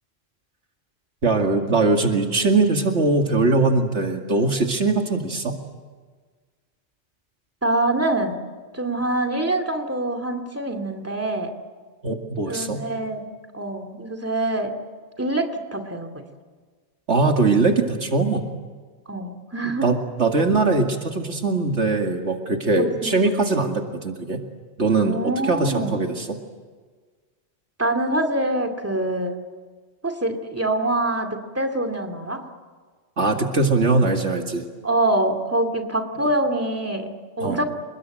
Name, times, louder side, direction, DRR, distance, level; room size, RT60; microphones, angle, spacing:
voice 1, 1.2-5.5 12.0-12.8 17.1-18.4 19.6-24.4 24.8-26.4 33.2-34.7 37.4-37.6, right 3 dB, 80° right, 4 dB, 2.5 m, -21 dB
voice 2, 7.6-8.4 8.7-11.5 12.4-13.3 13.5-14.7 15.2-16.1 19.1-19.9 22.8-23.1 25.1-26.0 27.8-29.4 30.0-32.4 34.8-37.6, right 1 dB, 10° right, 4 dB, 2.4 m, -25 dB
29.5 x 20.5 x 9.0 m, 1.5 s
omnidirectional pair, 1.2 m